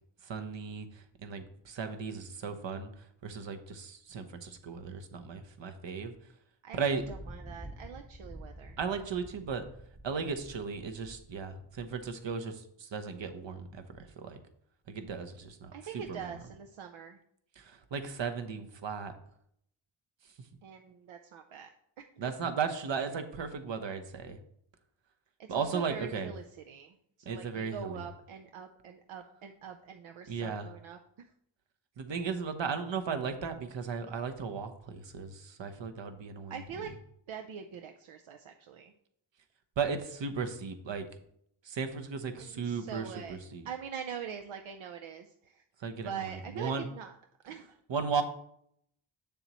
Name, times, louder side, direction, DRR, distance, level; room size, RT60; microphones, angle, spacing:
voice 1, 0.2-6.1 6.7-7.0 8.8-9.6 10.0-14.4 14.9-16.4 17.6-19.1 22.2-24.4 25.5-26.3 27.3-28.0 30.3-30.7 32.0-36.5 39.8-41.1 41.6-43.7 45.8-46.9 47.9-48.2, right 5 dB, 65° right, 7 dB, 1.0 m, -36 dB
voice 2, 6.6-8.8 15.7-17.2 20.6-21.7 22.2-22.3 25.4-31.3 36.5-36.9 37.3-38.9 42.4-43.4 43.6-45.6 46.0-47.2 47.4-47.8, right 7 dB, 80° right, 5 dB, 0.6 m, -43 dB
Thunder, 7.0-12.4, right 1 dB, 15° right, 0.7 m, -49 dB
7.0 x 6.9 x 3.0 m, 0.70 s
cardioid pair, 55°, 48 cm